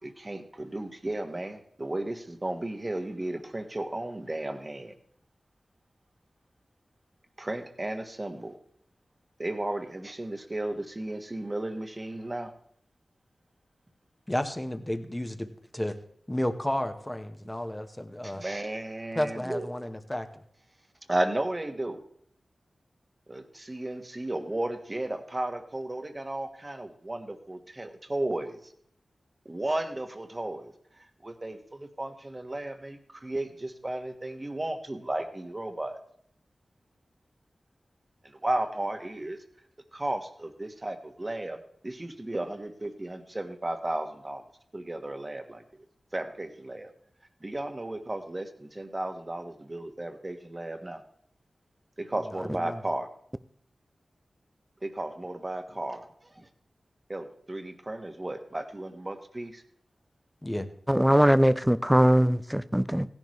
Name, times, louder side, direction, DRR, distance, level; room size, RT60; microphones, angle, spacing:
voice 1, 0.0-4.9 7.4-8.6 9.4-12.5 18.2-19.7 21.1-22.0 23.3-28.7 29.4-36.0 38.2-39.4 39.9-44.4 44.7-45.6 46.1-46.9 47.4-51.0 52.0-53.1 54.8-56.5 57.1-59.6, right 1 dB, 35° right, 1.4 m, -34 dB
voice 2, 14.3-15.9 16.3-18.4 19.1-20.3 52.3-52.8 60.4-60.7, left 1 dB, 15° left, 1.2 m, -32 dB
voice 3, 60.9-63.1, equal, 5° right, 0.5 m, -21 dB
16.0 x 11.0 x 3.2 m
cardioid pair, 40°, 0 cm